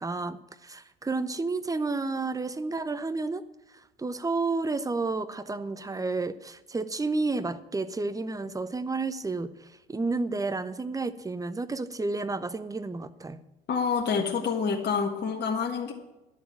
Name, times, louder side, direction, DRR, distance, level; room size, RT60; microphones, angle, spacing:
voice 1, 0.0-3.4 4.0-9.5 9.9-13.4, right 3 dB, 10° right, 13 dB, 0.8 m, -31 dB
voice 2, 13.7-15.9, left 5 dB, 35° left, 1 dB, 1.6 m, -27 dB
11.0 x 7.1 x 8.9 m, 0.96 s
figure-of-eight pair, 65°, 29 cm